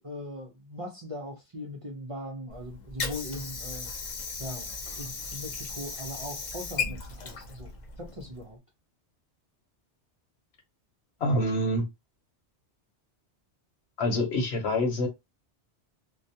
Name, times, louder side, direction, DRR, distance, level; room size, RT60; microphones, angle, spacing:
voice 1, 0.0-3.9 4.4-8.6, left 1 dB, 40° right, 0.5 m, -40 dB
Water / Sink (filling or washing), 2.5-8.5, left 4 dB, 50° left, 0.6 m, -37 dB
voice 2, 11.2-11.8 14.0-15.1, left 1 dB, 70° left, 1.0 m, -26 dB
2.3 x 2.2 x 2.7 m
omnidirectional pair, 1.2 m